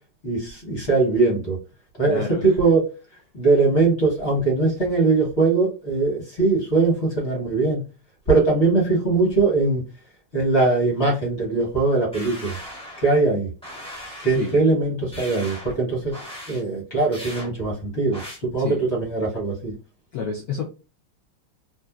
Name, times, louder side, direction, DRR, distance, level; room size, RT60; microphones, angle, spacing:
voice 1, 0.2-1.6 2.0-2.9 3.3-7.8 8.3-9.8 10.3-12.6 13.0-13.5 14.2-16.1 16.5-19.7, right 3 dB, 40° left, -2 dB, 1.2 m, -21 dB
voice 2, 2.1-2.5 14.3-14.5 18.6-18.8 20.1-20.6, left 6 dB, 75° left, 0 dB, 0.8 m, -29 dB
sound 1, 12.1-13.2 13.6-14.6 15.1-15.8 16.1-16.6 17.1-17.5 18.1-18.4, equal, 10° left, 0.3 m, -38 dB
3.1 x 2.5 x 2.3 m, 0.31 s
omnidirectional pair, 2.2 m